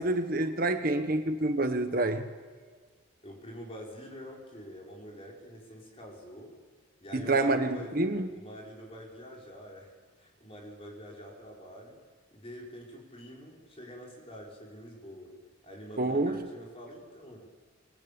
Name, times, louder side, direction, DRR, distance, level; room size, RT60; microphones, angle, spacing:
voice 1, 0.0-2.3 7.1-8.3 16.0-16.4, right 2 dB, 45° right, 7 dB, 1.2 m, -27 dB
voice 2, 3.2-6.5 7.0-7.9 8.3-12.0 12.3-15.3 15.6-17.4, equal, 30° left, -2 dB, 5.9 m, -46 dB
26.0 x 21.0 x 8.9 m, 1.5 s
head